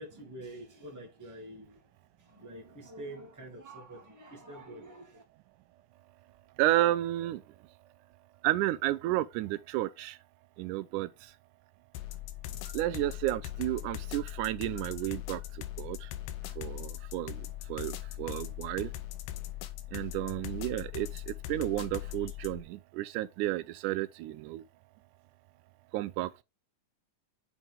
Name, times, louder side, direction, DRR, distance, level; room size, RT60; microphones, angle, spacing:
voice 1, 0.0-1.9 2.2-5.2, right 1 dB, 5° right, 1.5 m, -46 dB
voice 2, 6.6-7.4 8.4-10.2 10.6-11.3 12.7-16.1 16.6-18.9 19.9-24.6 25.9-26.4, right 15 dB, 90° right, 2.1 m, -32 dB
sound 1, 11.9-22.6, left 14 dB, 85° left, 2.3 m, -40 dB
7.5 x 4.5 x 3.5 m
omnidirectional pair, 3.5 m